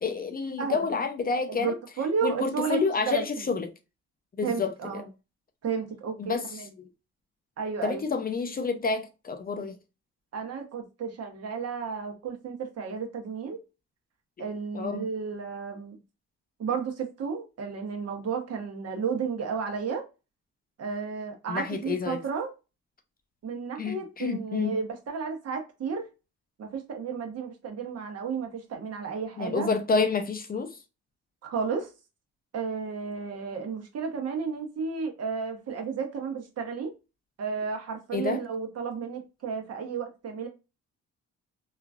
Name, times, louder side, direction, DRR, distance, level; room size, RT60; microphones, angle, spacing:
voice 1, 0.0-1.8 2.2-3.7 4.4-5.1 6.2-6.9 7.8-9.8 14.4-15.0 21.5-22.2 23.8-24.7 29.4-30.8 38.1-38.4, left 4 dB, 30° left, 0.5 m, -29 dB
voice 2, 1.5-2.8 3.1-3.2 4.4-5.1 5.6-6.7 7.6-8.0 10.3-13.6 14.4-16.0 16.6-20.0 20.8-22.5 23.4-26.1 26.6-29.7 31.4-31.9 32.5-36.9 37.4-40.5, right 5 dB, 55° right, 0.9 m, -32 dB
3.0 x 2.4 x 2.3 m
cardioid pair, 90°, 30 cm